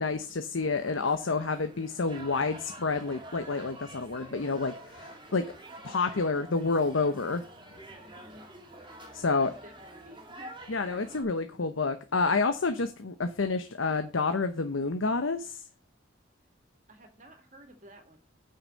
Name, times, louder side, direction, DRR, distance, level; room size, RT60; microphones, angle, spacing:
voice 1, 0.0-5.4 5.8-7.4 9.1-9.5 10.7-15.6, left 4 dB, 85° left, 8 dB, 0.9 m, -29 dB
sound 1, 0.6-11.2, right 1 dB, 25° right, 2.3 m, -48 dB
voice 2, 7.9-8.4 9.3-10.5 16.9-18.2, equal, 40° right, 5 dB, 2.3 m, -52 dB
9.0 x 5.7 x 6.5 m, 0.36 s
head